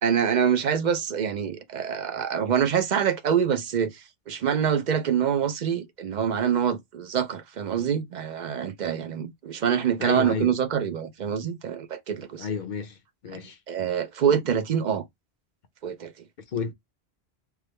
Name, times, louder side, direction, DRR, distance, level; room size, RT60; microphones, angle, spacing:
voice 1, 0.0-12.5 13.3-13.4 13.7-15.0 15.8-16.1, right 8 dB, 55° right, 0.6 m, -25 dB
voice 2, 10.0-10.6 12.4-13.0 13.2-13.6 16.5-16.7, left 5 dB, 55° left, 0.7 m, -30 dB
3.5 x 2.0 x 3.1 m
omnidirectional pair, 1.1 m